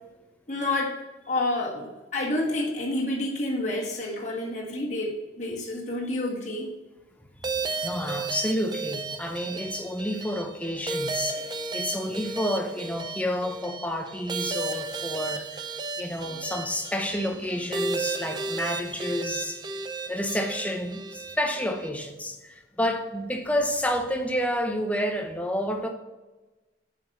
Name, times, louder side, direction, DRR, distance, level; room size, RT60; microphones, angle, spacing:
voice 1, 0.5-0.9 1.3-6.7, left 1 dB, 40° left, 1.6 m, -29 dB
voice 2, 7.4-11.4 11.7-15.6 16.0-19.6 20.1-25.9, equal, 10° left, 0.7 m, -30 dB
sound 1, 7.4-21.9, right 3 dB, 25° right, 0.4 m, -34 dB
7.2 x 5.1 x 4.1 m
head